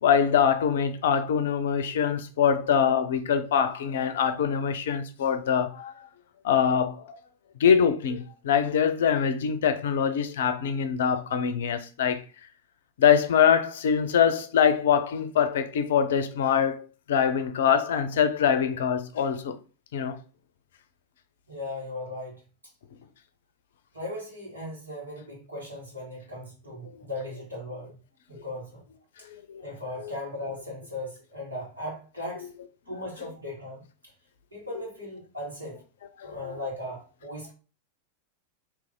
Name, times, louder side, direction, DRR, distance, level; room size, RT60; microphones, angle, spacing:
voice 1, 0.0-5.9 6.4-7.0 7.6-12.2 13.0-16.8 17.1-19.5 19.9-20.2 29.5-29.6 36.2-36.5, left 7 dB, 60° left, 0.5 m, -23 dB
voice 2, 21.5-22.4 23.9-28.0 28.3-28.8 29.6-32.5 32.9-33.8 34.5-35.8 36.2-37.5, left 1 dB, 80° right, 1.8 m, -37 dB
3.3 x 3.0 x 3.6 m
figure-of-eight pair, 90°, 0 cm